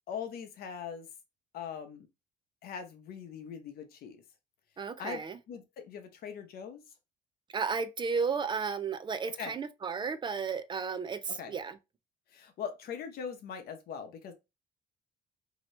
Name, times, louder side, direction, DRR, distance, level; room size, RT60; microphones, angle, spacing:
voice 1, 0.1-1.1 1.5-2.1 2.6-4.2 5.0-5.2 5.5-6.8 9.4-9.5 11.4-11.5 12.3-14.3, left 7 dB, 65° left, 0.8 m, -41 dB
voice 2, 4.8-5.4 7.5-11.8, right 5 dB, 30° right, 0.4 m, -33 dB
2.9 x 2.8 x 3.1 m
cardioid pair, 110°, 17 cm